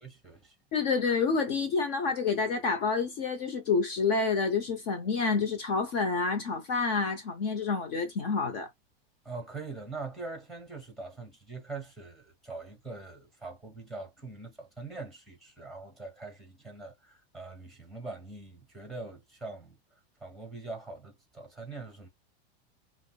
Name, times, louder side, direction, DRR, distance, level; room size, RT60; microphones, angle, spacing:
voice 1, 0.0-0.5 9.2-19.8 20.2-22.1, right 3 dB, ahead, 1.3 m, -43 dB
voice 2, 0.7-8.7, left 4 dB, 40° left, 0.7 m, -28 dB
5.2 x 2.1 x 2.2 m
supercardioid pair, 160°, 31 cm